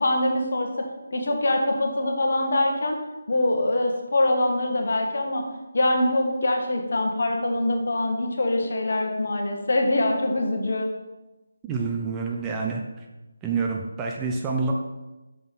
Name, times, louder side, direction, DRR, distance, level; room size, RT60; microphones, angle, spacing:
voice 1, 0.0-3.0 3.3-5.4 5.7-10.9, left 1 dB, 55° left, 3 dB, 1.5 m, -24 dB
voice 2, 11.6-13.1 13.4-14.7, right 4 dB, 15° right, 0 dB, 0.7 m, -28 dB
8.5 x 6.3 x 4.1 m, 1.1 s
figure-of-eight pair, 155°, 0 cm